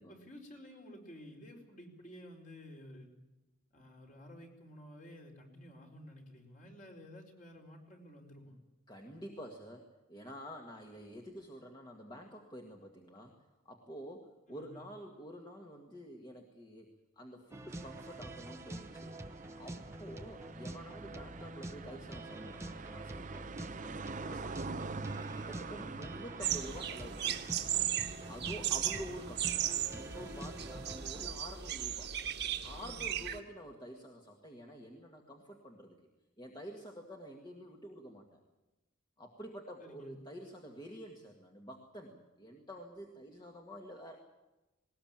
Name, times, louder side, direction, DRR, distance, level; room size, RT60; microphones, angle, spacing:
voice 1, 0.1-3.1 3.7-8.6 14.5-14.8 24.7-25.1 25.7-26.0 32.8-33.1 39.8-40.2, equal, 40° left, 1 dB, 4.4 m, -53 dB
voice 2, 8.9-13.3 13.6-16.9 17.1-19.2 19.6-23.4 24.2-24.6 25.3-27.4 28.3-29.6 29.9-32.2 32.6-36.0 36.4-38.4 39.2-44.2, equal, 20° left, 1 dB, 1.8 m, -48 dB
sound 1, 17.5-31.3, right 1 dB, 15° right, 1.0 m, -47 dB
sound 2, 17.7-31.1, right 3 dB, 35° right, 0.7 m, -46 dB
sound 3, 26.4-33.4, right 10 dB, 55° right, 1.5 m, -36 dB
20.0 x 19.5 x 8.9 m, 1.0 s
head